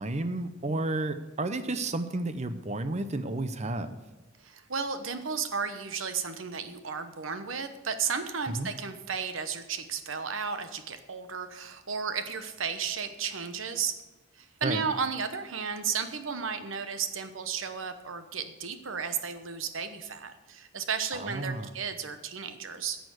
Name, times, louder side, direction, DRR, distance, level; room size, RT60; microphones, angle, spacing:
voice 1, 0.0-4.0 8.5-8.7 14.6-14.8 21.1-21.7, right 2 dB, 35° right, 11 dB, 0.8 m, -32 dB
voice 2, 4.4-13.9 14.3-23.0, right 6 dB, 70° right, 9 dB, 1.0 m, -33 dB
11.0 x 6.9 x 8.1 m, 1.1 s
head